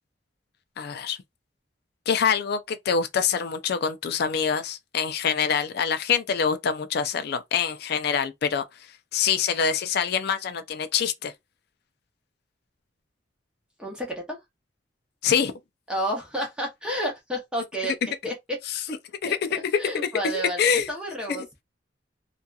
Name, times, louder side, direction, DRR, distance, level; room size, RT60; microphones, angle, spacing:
voice 1, 0.8-1.2 2.1-8.6 9.1-11.3 15.2-15.5 18.0-18.1 18.7-18.8 19.2-20.1 20.6-20.9 21.3-21.4, left 7 dB, 60° left, 0.4 m, -25 dB
voice 2, 13.8-14.4 15.9-17.9 18.2-18.6 19.2-19.3 19.8-21.6, equal, 5° right, 0.7 m, -30 dB
2.7 x 2.4 x 2.3 m
head